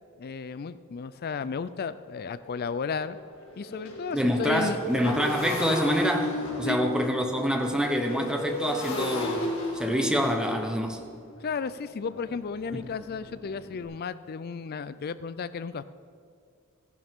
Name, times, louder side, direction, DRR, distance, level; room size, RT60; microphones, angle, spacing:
voice 1, 0.2-3.2 3.6-4.8 6.7-6.9 11.4-15.8, left 5 dB, 45° left, 14 dB, 0.4 m, -33 dB
Motorcycle, 1.9-2.0 2.2-13.8, left 1 dB, 70° left, 2.0 m, -35 dB
voice 2, 4.1-11.0 12.7-12.8, equal, 5° right, 3 dB, 0.9 m, -27 dB
14.0 x 11.0 x 3.6 m, 2.2 s
head